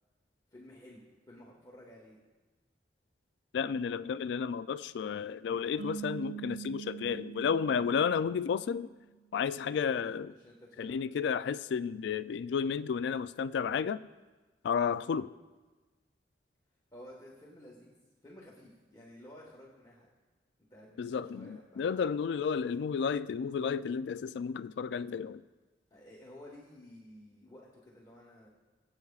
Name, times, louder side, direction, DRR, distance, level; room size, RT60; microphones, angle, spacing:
voice 1, 0.5-2.2 10.3-11.0 16.9-18.0 18.2-20.1 20.7-22.5 25.9-28.5, left 1 dB, 20° left, 1.4 m, -53 dB
voice 2, 3.5-8.9 9.3-10.3 10.8-14.0 14.6-15.3 21.0-25.4, left 6 dB, 65° left, 0.3 m, -32 dB
sound 1, 5.8-9.1, right 9 dB, 70° right, 1.6 m, -44 dB
22.5 x 8.1 x 2.4 m
head